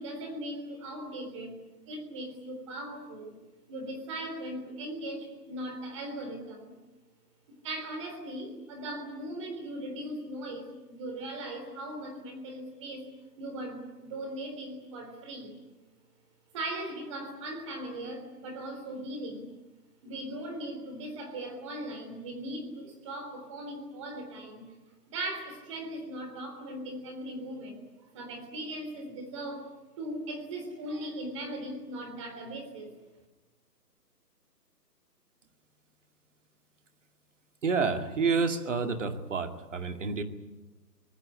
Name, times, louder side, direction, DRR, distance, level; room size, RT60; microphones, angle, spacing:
voice 1, 0.0-1.6 1.9-3.4 3.7-6.8 7.6-13.1 13.4-15.6 16.5-19.5 20.0-24.7 25.1-27.8 28.1-29.7 30.0-32.9, right 1 dB, 20° right, 4 dB, 3.6 m, -39 dB
voice 2, 37.6-40.2, right 5 dB, 45° right, 7 dB, 2.4 m, -29 dB
24.5 x 19.5 x 10.0 m, 1.1 s
hypercardioid pair, 170°, 49 cm